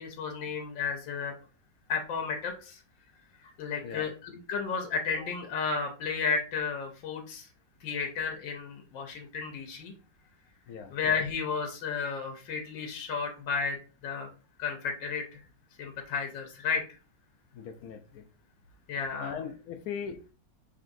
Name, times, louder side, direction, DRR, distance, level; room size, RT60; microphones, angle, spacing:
voice 1, 0.0-1.3 1.9-2.8 3.4-7.5 7.8-9.9 10.9-13.8 14.0-14.3 14.6-15.4 15.8-16.8 18.9-19.4, left 5 dB, 90° left, 1.5 m, -33 dB
voice 2, 17.5-18.2 19.2-20.3, left 7 dB, 70° left, 0.8 m, -39 dB
5.3 x 3.8 x 2.6 m
omnidirectional pair, 2.0 m